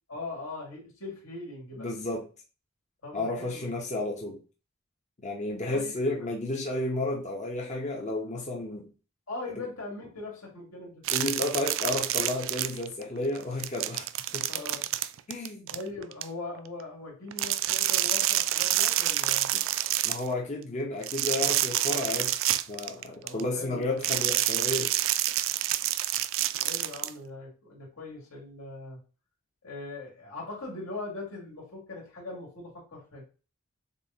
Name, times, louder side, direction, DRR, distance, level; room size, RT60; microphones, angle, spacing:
voice 1, 0.1-1.9 3.0-3.8 5.7-6.3 9.3-11.0 14.5-14.9 15.7-19.5 23.2-24.0 26.6-29.0 29.6-33.2, left 2 dB, 85° left, -2 dB, 2.5 m, -40 dB
voice 2, 1.8-2.3 3.1-4.4 5.2-8.9 9.6-9.7 11.1-14.1 14.3-14.5 15.3-15.7 19.5-19.6 20.0-22.4 22.7-24.9, left 2 dB, 35° left, -1 dB, 0.8 m, -32 dB
sound 1, 11.1-13.0 13.4-16.2 17.3-20.3 21.0-23.4 24.0-27.1, right 14 dB, 65° right, 0.3 m, -28 dB
6.8 x 2.4 x 2.8 m, 0.34 s
head